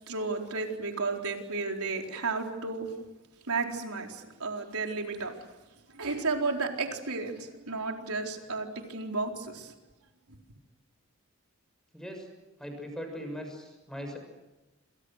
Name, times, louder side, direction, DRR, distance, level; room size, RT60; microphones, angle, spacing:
voice 1, 0.1-2.9 3.5-5.4 5.9-9.7, right 3 dB, 85° right, 2 dB, 4.3 m, -33 dB
voice 2, 11.9-12.3 12.6-14.2, equal, 5° left, 4 dB, 6.6 m, -39 dB
29.0 x 27.0 x 6.6 m, 1.1 s
head